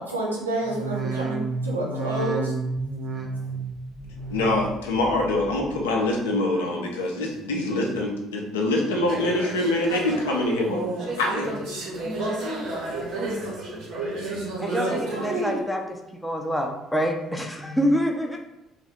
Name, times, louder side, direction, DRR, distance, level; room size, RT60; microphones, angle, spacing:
voice 1, 0.0-2.5, right 1 dB, 85° right, -3 dB, 0.6 m, -29 dB
sound 1, 0.6-6.0 6.3-6.9 7.4-8.0 8.5-9.1 9.6-10.2 10.7-11.3 11.8-11.9, right 4 dB, 35° right, 0.4 m, -33 dB
voice 2, 4.3-10.8 11.2-11.6, left 2 dB, 75° left, 0 dB, 0.6 m, -24 dB
sound 2, 9.1-15.6, right 2 dB, 65° right, 1.1 m, -31 dB
voice 3, 14.6-16.0 16.2-18.4, equal, 5° left, 2 dB, 0.6 m, -26 dB
2.6 x 2.6 x 3.4 m, 0.90 s
figure-of-eight pair, 50°, 0 cm